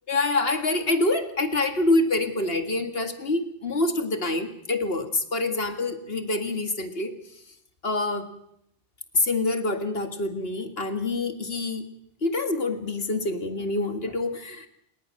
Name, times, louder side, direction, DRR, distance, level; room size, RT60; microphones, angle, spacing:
voice 1, 0.1-7.1 7.8-8.3 9.1-11.9 12.2-14.7, left 2 dB, 55° left, 7 dB, 2.1 m, -26 dB
30.0 x 18.5 x 6.5 m, 0.78 s
omnidirectional pair, 1.2 m